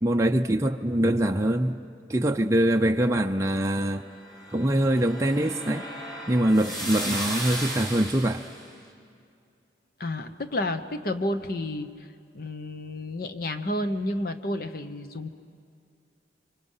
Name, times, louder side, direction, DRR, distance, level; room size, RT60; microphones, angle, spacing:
voice 1, 0.0-1.8 2.1-4.1 4.5-5.9 6.3-8.5, right 1 dB, 15° right, 0.6 m, -23 dB
sound 1, 4.0-8.7, right 1 dB, 20° left, 3.3 m, -35 dB
voice 2, 10.0-11.9 12.3-15.3, left 1 dB, 55° left, 1.0 m, -30 dB
30.0 x 25.0 x 5.7 m
head